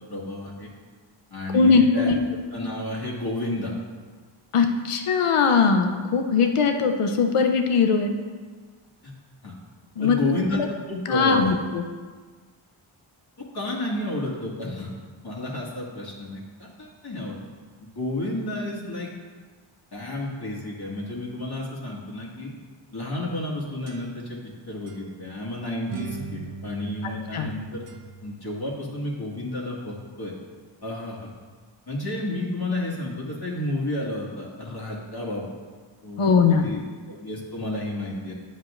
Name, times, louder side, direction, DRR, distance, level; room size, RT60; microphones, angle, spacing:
voice 1, 0.1-0.7 1.3-2.1 2.5-3.7 9.0-9.1 9.4-9.5 10.0-11.6 13.5-14.9 15.2-17.4 17.8-19.1 19.9-22.5 22.9-24.4 24.7-27.8 28.2-30.3 30.8-31.3 31.9-35.5 36.0-36.8 37.1-38.3, left 1 dB, 50° left, -4 dB, 2.0 m, -31 dB
voice 2, 1.5-2.2 4.5-8.1 10.0-10.2 10.5-10.7 11.1-11.9 27.0-27.5 36.2-36.7, left 5 dB, 85° left, 5 dB, 0.7 m, -20 dB
sound 1, 23.3-24.5 24.9-25.0 25.9-28.4, right 4 dB, 90° right, 0.8 m, -39 dB
10.0 x 7.3 x 2.5 m, 1.5 s
wide cardioid pair, 65°, 50 cm